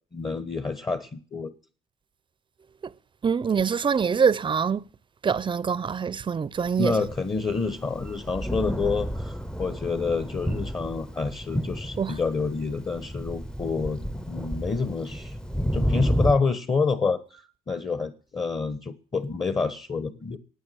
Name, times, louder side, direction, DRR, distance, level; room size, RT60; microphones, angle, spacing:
voice 1, 0.1-1.5 6.8-14.0 14.3-15.3 15.7-17.4 17.7-20.4, left 4 dB, 25° left, 1.2 m, -28 dB
voice 2, 3.2-4.9 5.2-7.0 12.0-12.2, right 6 dB, 30° right, 0.6 m, -24 dB
Thunder, 6.8-16.3, equal, 5° left, 0.8 m, -31 dB
15.0 x 9.3 x 9.4 m
cardioid pair, 110°, 17 cm